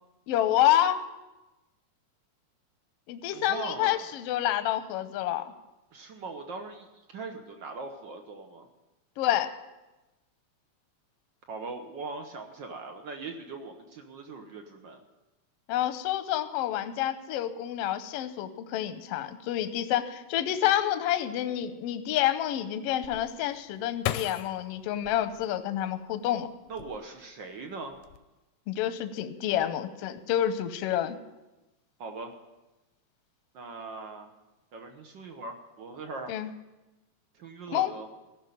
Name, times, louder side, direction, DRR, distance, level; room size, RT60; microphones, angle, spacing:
voice 1, 0.3-1.0 3.1-5.5 9.2-9.5 15.7-26.5 28.7-31.2 36.3-36.5 37.7-37.9, left 12 dB, 70° left, 10 dB, 1.5 m, -28 dB
voice 2, 3.3-4.1 5.9-8.7 11.5-15.0 26.7-28.0 32.0-32.3 33.5-34.3 34.7-36.3 37.3-38.1, right 4 dB, 65° right, 5 dB, 1.1 m, -40 dB
sound 1, 23.0-26.1 26.6-27.4 27.7-28.2, left 13 dB, 85° left, 2.1 m, -37 dB
15.0 x 6.3 x 9.1 m, 1.1 s
omnidirectional pair, 3.5 m